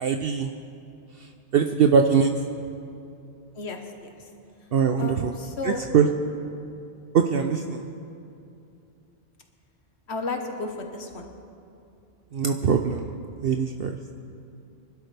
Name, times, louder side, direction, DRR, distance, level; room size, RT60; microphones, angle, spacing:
voice 1, 0.0-0.5 1.5-2.3 4.7-5.3 5.6-6.1 7.1-7.8 12.3-13.1 13.4-14.0, right 6 dB, 60° right, 6 dB, 0.7 m, -22 dB
voice 2, 3.5-4.1 5.0-5.9 10.1-11.3, left 3 dB, 65° left, 4 dB, 1.6 m, -33 dB
25.5 x 12.0 x 3.4 m, 2.6 s
omnidirectional pair, 1.2 m